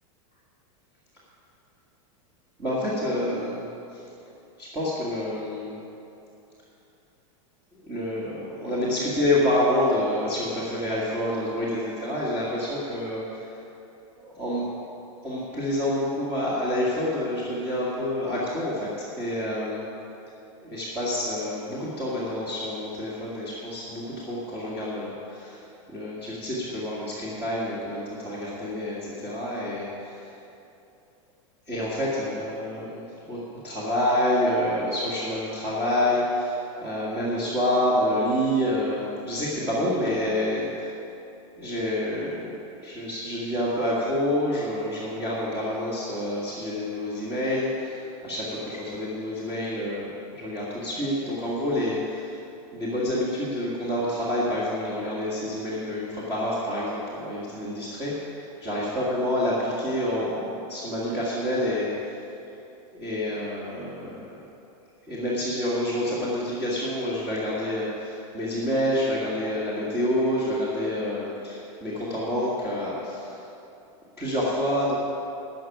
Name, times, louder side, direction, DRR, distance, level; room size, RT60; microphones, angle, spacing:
voice 1, 2.6-3.6 3.9-4.0 4.6-5.7 7.8-13.5 14.2-14.6 15.2-19.8 20.6-25.6 25.9-30.3 31.7-40.9 41.6-42.5 42.8-52.4 52.7-61.9 63.0-64.4 65.1-73.4 74.2-74.9, left 1 dB, 15° right, -9 dB, 1.9 m, -28 dB
13.0 x 6.0 x 9.3 m, 2.8 s
supercardioid pair, 165°, 17 cm